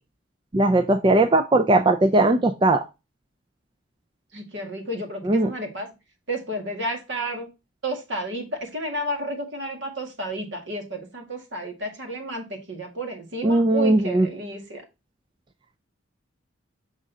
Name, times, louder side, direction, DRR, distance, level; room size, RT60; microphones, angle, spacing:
voice 1, 0.5-2.8 5.3-5.5 13.4-14.3, right 2 dB, 25° right, 6 dB, 0.4 m, -19 dB
voice 2, 4.3-5.9 6.3-7.5 7.8-14.8, right 1 dB, 65° right, 3 dB, 1.9 m, -31 dB
6.4 x 3.7 x 4.0 m, 0.26 s
head